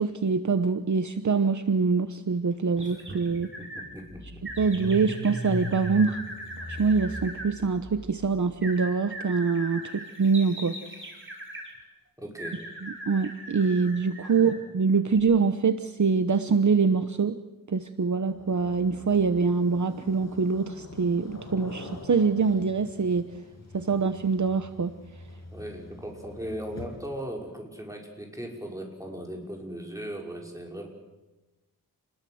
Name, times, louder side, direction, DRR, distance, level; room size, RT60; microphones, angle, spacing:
voice 1, 0.0-3.5 4.6-6.2 6.7-10.8 12.8-17.4 17.7-23.3 23.7-24.9, right 5 dB, 50° right, 10 dB, 1.0 m, -24 dB
Car / Engine starting, 2.8-2.9 3.3-8.5, equal, 20° left, 7.7 m, -38 dB
sound 1, 2.8-3.9 4.4-7.5 8.6-11.7 12.4-14.6 15.1-15.2, right 1 dB, 30° right, 5.7 m, -40 dB
voice 2, 3.6-4.4 12.2-12.6 14.3-14.6 25.5-30.9, right 1 dB, 10° right, 1 dB, 5.4 m, -38 dB
sound 2, 18.1-27.3, left 2 dB, 45° left, 7.1 m, -45 dB
28.5 x 20.5 x 7.9 m, 1.1 s
wide cardioid pair, 120°, 37 cm